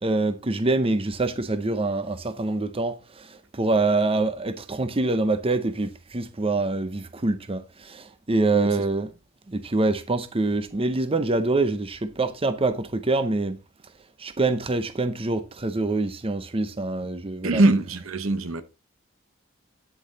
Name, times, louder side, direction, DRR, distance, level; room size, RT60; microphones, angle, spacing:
voice 1, 0.0-3.3 3.5-9.1 9.5-13.6 14.2-17.6, right 2 dB, 30° right, 0.7 m, -25 dB
voice 2, 17.4-18.6, right 2 dB, 75° right, 1.0 m, -22 dB
9.6 x 7.0 x 3.9 m
head